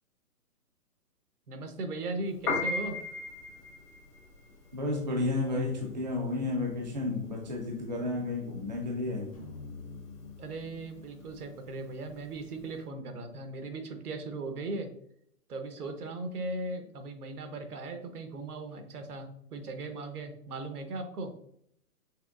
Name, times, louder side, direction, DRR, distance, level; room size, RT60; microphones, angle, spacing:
voice 1, 1.5-3.0 10.4-14.9 15.5-21.4, right 2 dB, 70° right, 7 dB, 1.0 m, -38 dB
Piano, 2.3-12.7, left 4 dB, 65° left, 1.6 m, -38 dB
voice 2, 4.7-9.3, left 2 dB, 30° right, -1 dB, 0.4 m, -32 dB
sound 1, 9.3-13.6, left 4 dB, 25° left, 0.6 m, -49 dB
5.9 x 3.1 x 2.4 m, 0.71 s
hypercardioid pair, 170°, 46 cm